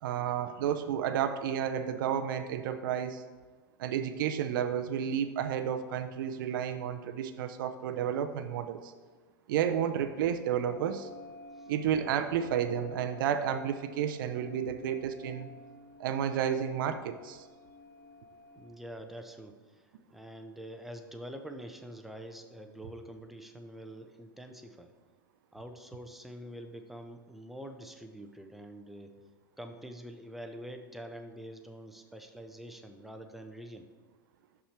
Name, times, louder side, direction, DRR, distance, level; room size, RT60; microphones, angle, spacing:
voice 1, 0.0-3.2 3.8-8.9 9.5-11.1 11.7-15.5 16.0-17.4, right 9 dB, 65° right, 9 dB, 0.5 m, -31 dB
sound 1, 10.6-18.7, left 2 dB, 45° left, 1.8 m, -51 dB
voice 2, 18.6-19.8 20.1-24.9 25.5-29.1 29.6-33.9, equal, ahead, 5 dB, 0.6 m, -46 dB
6.2 x 5.6 x 4.3 m, 1.4 s
hypercardioid pair, 115°, 12 cm